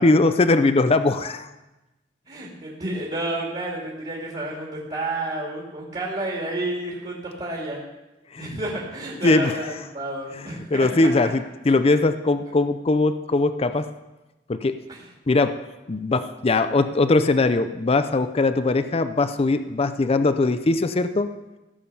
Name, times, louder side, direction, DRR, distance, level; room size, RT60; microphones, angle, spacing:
voice 1, 0.0-1.5 8.3-8.6 9.2-9.6 10.3-13.9 14.5-14.8 15.3-15.6 15.9-21.3, left 3 dB, 35° left, 11 dB, 0.5 m, -21 dB
voice 2, 2.3-7.8 8.4-11.1 14.9-15.0, right 1 dB, 35° right, -3 dB, 2.5 m, -30 dB
16.0 x 7.3 x 5.5 m, 1.0 s
head